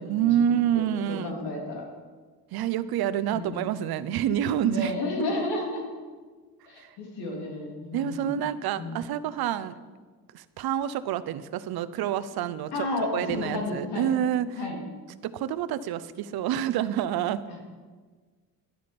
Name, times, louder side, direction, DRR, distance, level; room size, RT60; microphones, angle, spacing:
voice 1, 0.0-1.3 2.5-4.9 6.8-6.9 7.9-9.7 10.3-12.9 13.1-14.6 15.2-17.4, right 10 dB, 70° right, 15 dB, 0.7 m, -27 dB
voice 2, 0.7-1.8 3.3-3.5 4.6-5.9 6.7-8.4 8.8-8.9 12.7-14.1 14.6-14.8 17.5-17.6, left 2 dB, 85° left, 0 dB, 3.2 m, -32 dB
12.0 x 10.5 x 5.2 m, 1.4 s
cardioid pair, 160°, 39 cm